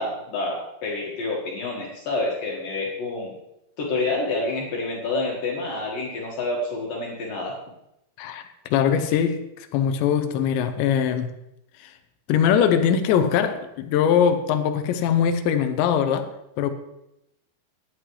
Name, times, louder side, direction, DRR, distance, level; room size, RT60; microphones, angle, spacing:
voice 1, 0.0-3.3 3.8-7.5, left 2 dB, 60° left, -2 dB, 3.0 m, -28 dB
voice 2, 8.7-11.3 11.8-11.9 12.3-16.3 16.6-16.7, left 8 dB, 90° left, 9 dB, 3.0 m, -21 dB
16.0 x 9.8 x 3.2 m, 0.86 s
omnidirectional pair, 5.0 m